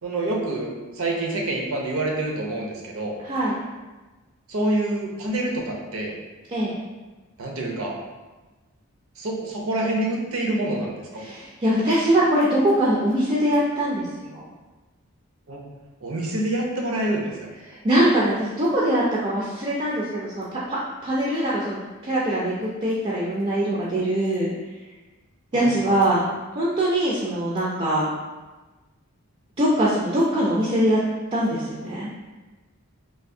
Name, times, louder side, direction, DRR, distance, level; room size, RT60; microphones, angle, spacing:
voice 1, 0.0-3.2 4.5-6.1 7.4-8.0 9.2-11.2 15.5-15.6 16.0-17.3 25.5-26.0, right 1 dB, 70° right, -1 dB, 0.6 m, -27 dB
voice 2, 3.2-3.6 6.5-6.7 11.2-14.5 17.7-21.8 22.0-24.5 25.5-26.2 26.6-28.1 29.6-31.0 31.3-32.1, right 1 dB, 30° right, -6 dB, 0.4 m, -22 dB
3.3 x 2.6 x 2.6 m, 1.2 s
head